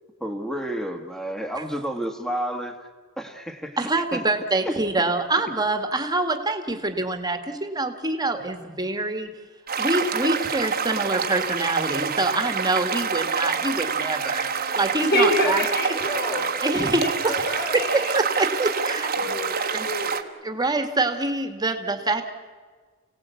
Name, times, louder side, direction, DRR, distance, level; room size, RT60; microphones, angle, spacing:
voice 1, 0.2-2.8 3.2-3.8 4.1-4.2 4.7-4.8, right 1 dB, ahead, 6 dB, 1.8 m, -30 dB
voice 2, 3.8-9.3 9.8-15.6 16.6-19.4 19.7-19.9 20.4-22.3, right 2 dB, 20° right, 7 dB, 1.7 m, -25 dB
sound 1, 9.7-20.2, right 6 dB, 45° right, 1.3 m, -27 dB
Wind instrument woodwind instrument, 12.5-16.5, left 1 dB, 70° left, 5.2 m, -42 dB
voice 3, 15.1-20.2, equal, 50° left, 2 dB, 4.1 m, -28 dB
29.5 x 17.5 x 8.3 m, 1.5 s
head